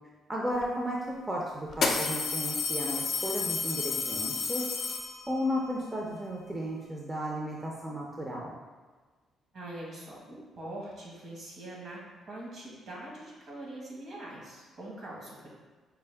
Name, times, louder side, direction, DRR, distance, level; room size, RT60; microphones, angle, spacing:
voice 1, 0.3-4.8 5.3-8.6, equal, 20° right, -3 dB, 0.5 m, -34 dB
sound 1, 0.6-0.7 1.7-5.5, left 4 dB, 60° left, 0.4 m, -31 dB
voice 2, 9.5-15.5, right 1 dB, 60° right, -4 dB, 1.3 m, -43 dB
4.5 x 2.0 x 3.3 m, 1.4 s
cardioid pair, 90°, 0 cm